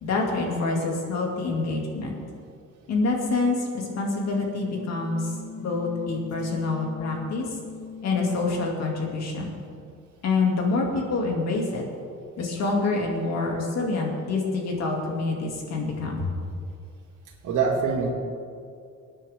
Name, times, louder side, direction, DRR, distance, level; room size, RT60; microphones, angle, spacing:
voice 1, 0.0-2.2 2.9-5.3 5.6-7.5 8.0-9.5 10.2-11.8 12.4-16.3, left 3 dB, 60° left, 0 dB, 2.6 m, -26 dB
sound 1, 3.8-8.8, left 6 dB, 30° left, 0.8 m, -40 dB
voice 2, 17.4-18.1, right 5 dB, 80° right, 0 dB, 2.5 m, -25 dB
23.0 x 9.6 x 3.7 m, 2.4 s
cardioid pair, 160°, 30 cm